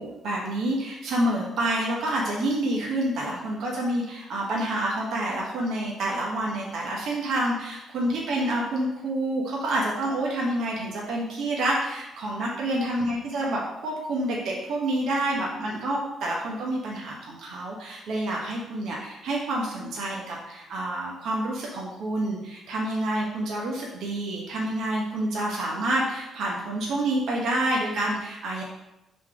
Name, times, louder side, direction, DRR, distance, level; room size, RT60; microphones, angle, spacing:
voice 1, 0.0-28.6, right 1 dB, 75° right, -3 dB, 1.2 m, -28 dB
5.6 x 4.1 x 5.0 m, 0.94 s
cardioid pair, 90°, 0 cm